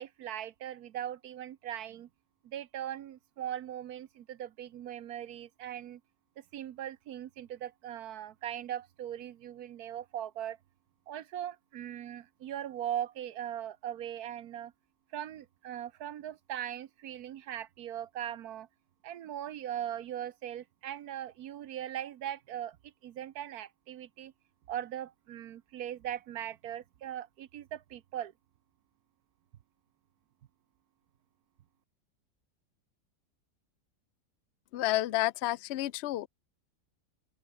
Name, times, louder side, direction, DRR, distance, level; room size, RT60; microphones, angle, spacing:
voice 1, 0.0-2.1 2.4-6.0 6.4-10.6 11.1-14.7 15.1-18.7 19.0-24.3 24.7-28.3, right 11 dB, 65° right, 1.2 m, -40 dB
voice 2, 34.7-36.3, left 16 dB, 80° left, 0.6 m, -30 dB
open air
omnidirectional pair, 1.8 m